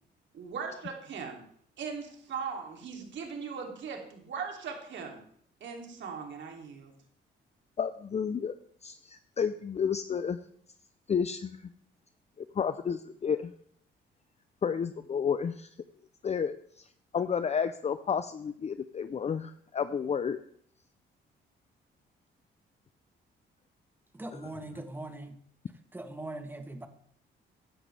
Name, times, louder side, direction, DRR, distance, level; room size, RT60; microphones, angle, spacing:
voice 1, 0.3-1.4 1.8-5.2 5.6-6.9, right 6 dB, 65° right, 2 dB, 2.9 m, -39 dB
voice 2, 7.8-8.5 8.8-10.4 11.1-11.6 12.5-13.5 14.6-15.7 16.2-16.8 17.1-20.4, left 7 dB, 35° left, 11 dB, 0.6 m, -31 dB
voice 3, 24.1-25.4 25.9-26.9, right 2 dB, 10° right, 7 dB, 1.4 m, -41 dB
15.0 x 11.0 x 3.4 m, 0.63 s
cardioid pair, 90°, 20 cm